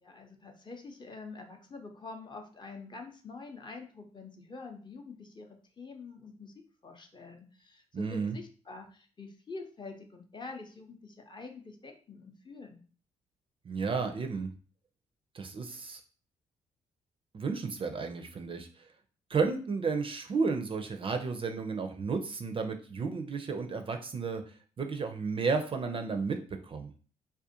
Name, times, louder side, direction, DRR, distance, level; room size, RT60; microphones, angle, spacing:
voice 1, 0.0-5.5 5.8-6.5 6.8-12.8, left 3 dB, 30° left, 3 dB, 0.6 m, -46 dB
voice 2, 7.9-8.4 13.6-14.5 15.3-16.0 17.3-18.7 19.3-26.9, right 4 dB, 35° right, 6 dB, 0.4 m, -32 dB
2.4 x 2.1 x 2.7 m, 0.40 s
hypercardioid pair, 50°, 16 cm